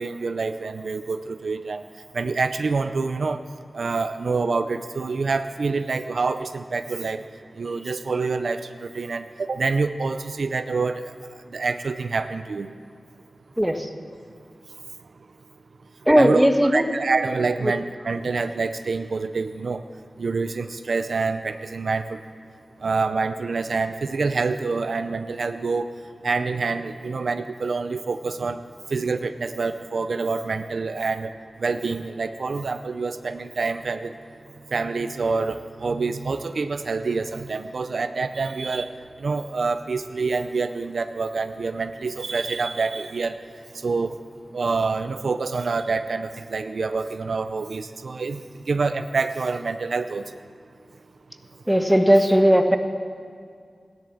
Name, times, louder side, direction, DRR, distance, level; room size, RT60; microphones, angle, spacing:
voice 1, 0.0-1.8 2.1-3.4 3.7-7.2 7.6-11.0 11.5-12.7 16.1-19.8 20.2-22.2 22.8-25.9 26.2-28.6 28.9-31.3 31.6-34.1 34.7-38.9 39.2-43.4 43.8-44.2 44.5-48.4 48.7-50.2, right 4 dB, 80° right, 9 dB, 0.5 m, -26 dB
voice 2, 16.1-16.8 51.7-52.8, equal, 10° right, 6 dB, 1.3 m, -17 dB
15.0 x 11.0 x 7.2 m, 2.2 s
cardioid pair, 45°, 0 cm